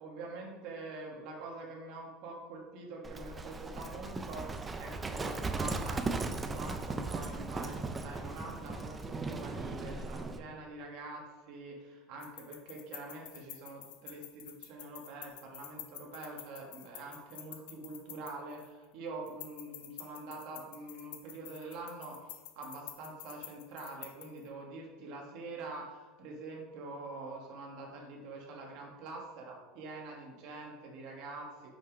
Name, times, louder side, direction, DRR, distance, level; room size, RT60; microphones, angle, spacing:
voice 1, 0.0-31.7, right 3 dB, 45° right, -1 dB, 1.2 m, -45 dB
Livestock farm animals working animals, 3.0-10.4, right 3 dB, 10° right, 0.4 m, -37 dB
sound 1, 12.2-18.8 19.3-24.5, left 12 dB, 75° left, 0.7 m, -49 dB
5.9 x 5.7 x 4.9 m, 1.3 s
supercardioid pair, 175°, 0 cm